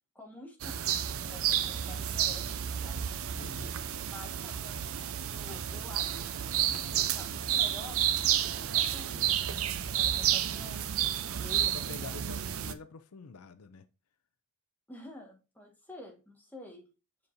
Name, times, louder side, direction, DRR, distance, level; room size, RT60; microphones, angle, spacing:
voice 1, 0.1-3.1 4.1-10.8 11.3-12.2 14.9-16.9, left 1 dB, 10° left, 1.6 m, -50 dB
sound 1, 0.6-12.7, right 10 dB, 65° right, 0.5 m, -31 dB
voice 2, 3.3-3.7 11.7-13.9, left 5 dB, 75° left, 0.5 m, -47 dB
7.0 x 5.1 x 2.6 m
head